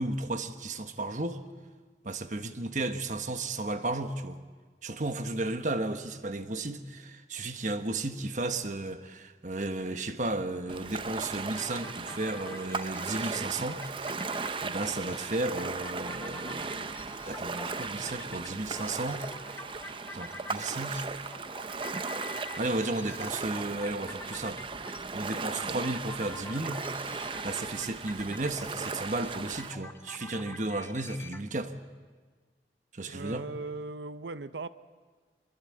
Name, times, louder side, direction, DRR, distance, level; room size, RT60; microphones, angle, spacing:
voice 1, 0.0-1.4 2.0-4.4 4.8-14.2 14.6-19.2 20.1-21.0 22.6-27.1 27.4-31.7 32.9-33.4, right 2 dB, 45° right, 1.3 m, -34 dB
Ocean, 10.7-29.7, right 4 dB, 30° right, 0.7 m, -37 dB
sound 1, 11.5-31.4, left 2 dB, 15° left, 0.9 m, -48 dB
voice 2, 33.1-34.7, right 3 dB, 90° right, 0.7 m, -38 dB
23.5 x 22.0 x 8.7 m
head